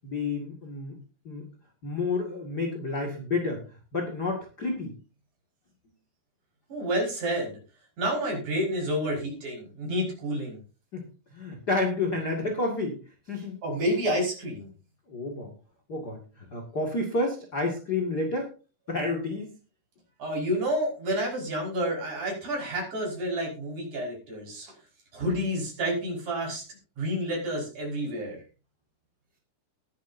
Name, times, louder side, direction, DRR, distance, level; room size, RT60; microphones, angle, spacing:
voice 1, 0.0-1.0 1.2-1.5 1.8-4.9 10.9-11.0 11.3-13.0 13.3-13.6 15.1-15.5 15.9-18.5 18.9-19.5, left 2 dB, 45° left, 1 dB, 1.3 m, -30 dB
voice 2, 6.7-7.6 8.0-10.6 13.6-14.7 20.2-24.7 25.1-26.6 27.0-28.4, equal, 40° right, -2 dB, 6.6 m, -29 dB
20.5 x 10.5 x 2.8 m, 0.33 s
omnidirectional pair, 5.7 m